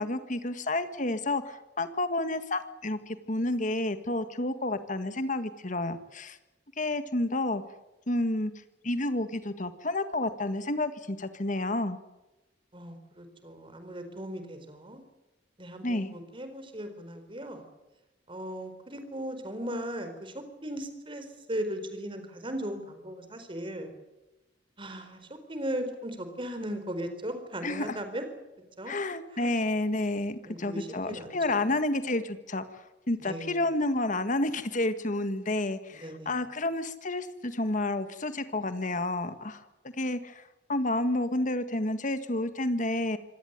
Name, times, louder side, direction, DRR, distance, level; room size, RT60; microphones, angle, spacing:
voice 1, 0.0-6.4 6.8-7.6 8.1-8.5 8.8-12.0 15.8-16.2 27.6-28.0 28.9-39.6 40.0-40.4 40.7-43.2, left 2 dB, 45° left, 11 dB, 1.7 m, -30 dB
voice 2, 12.7-15.0 15.6-17.6 18.3-23.9 24.8-28.2 28.8-28.9 29.3-29.5 30.4-31.6 33.2-33.6 35.9-36.3, right 1 dB, 30° right, 8 dB, 4.3 m, -37 dB
25.5 x 17.5 x 9.4 m, 1.0 s
head